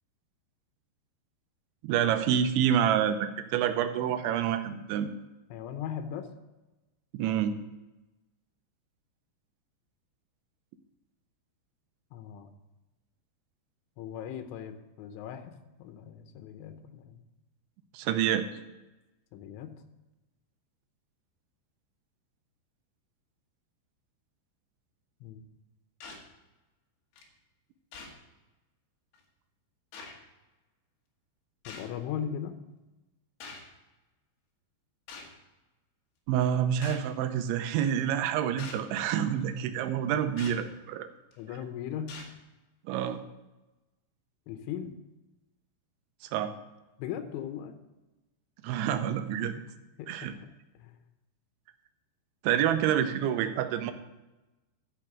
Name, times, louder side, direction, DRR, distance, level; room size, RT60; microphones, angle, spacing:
voice 1, 1.8-5.1 7.1-7.6 17.9-18.5 36.3-41.1 42.9-43.2 46.3-46.5 48.6-49.5 50.1-50.3 52.4-53.9, right 9 dB, 85° right, 9 dB, 3.0 m, -27 dB
voice 2, 5.5-6.3 12.1-12.5 14.0-17.2 19.3-19.8 25.2-25.5 31.7-32.6 41.4-42.1 44.5-45.0 47.0-47.8 50.0-51.0, left 9 dB, 85° left, 8 dB, 3.2 m, -39 dB
sound 1, 26.0-26.3 27.2-27.3 27.9-28.2 29.1-29.2 29.9-30.1 31.7-31.9 33.4-33.7 35.1-35.3 36.8-37.1 37.8-38.0 38.6-38.9 40.4-40.6 41.3-41.6 42.1-42.3 43.0-43.1, left 4 dB, 65° left, 3.2 m, -44 dB
13.0 x 5.4 x 6.0 m, 1.1 s
omnidirectional pair, 5.4 m